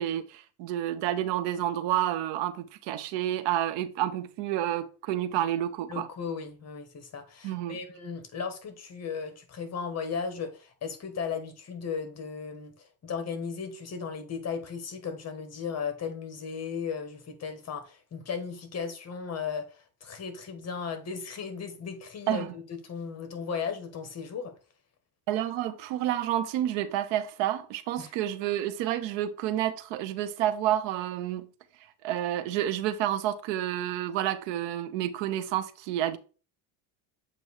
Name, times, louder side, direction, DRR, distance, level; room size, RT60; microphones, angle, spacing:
voice 1, 0.0-6.1 7.4-7.8 22.3-22.5 25.3-31.5 32.0-36.2, right 12 dB, 75° right, 0.8 m, -29 dB
voice 2, 5.9-24.5 28.0-28.1, left 6 dB, 35° left, 1.2 m, -36 dB
7.7 x 2.6 x 4.7 m
cardioid pair, 115°, 44 cm